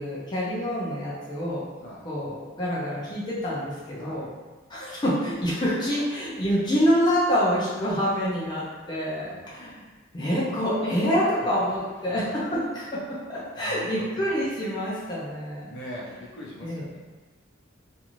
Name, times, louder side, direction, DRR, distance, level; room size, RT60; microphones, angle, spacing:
voice 1, 0.0-1.7 2.0-4.3 4.7-9.8 10.1-15.8 16.6-16.8, equal, 25° left, -8 dB, 0.6 m, -27 dB
voice 2, 3.9-4.2 9.1-9.6 12.1-12.2 13.6-14.1 15.6-17.0, equal, 65° left, -6 dB, 0.8 m, -41 dB
2.6 x 2.5 x 3.0 m, 1.2 s
head